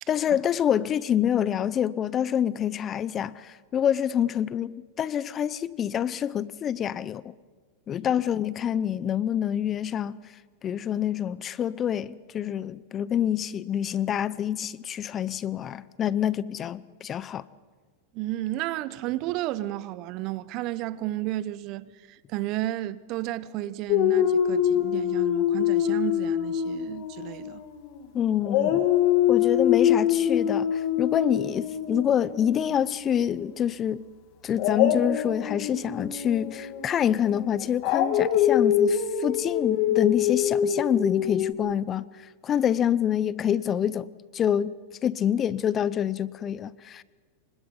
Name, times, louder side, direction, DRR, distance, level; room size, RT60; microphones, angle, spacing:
voice 1, 0.1-7.3 7.9-10.2 10.6-17.4 28.1-28.9 29.3-34.0 34.4-42.0 42.4-44.8 45.0-47.0, left 9 dB, 30° left, 0.7 m, -26 dB
voice 2, 18.1-27.6, right 15 dB, 50° right, 1.0 m, -32 dB
Dog, 23.9-28.1 28.4-33.4 34.5-41.5, left 10 dB, 55° left, 2.9 m, -25 dB
28.0 x 25.0 x 5.6 m
hypercardioid pair, 110°, 0 cm